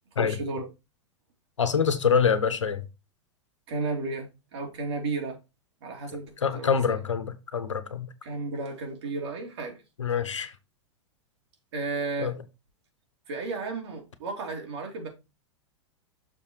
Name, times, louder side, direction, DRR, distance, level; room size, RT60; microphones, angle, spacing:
voice 1, 0.2-0.7 3.7-5.4 5.8-7.0 8.2-9.8 11.7-12.3 13.3-15.1, right 3 dB, 65° right, 2.9 m, -33 dB
voice 2, 1.6-2.8 6.4-8.1 10.0-10.5 12.2-12.3, left 6 dB, 80° left, 1.1 m, -25 dB
6.7 x 4.8 x 4.5 m
figure-of-eight pair, 100°, 15 cm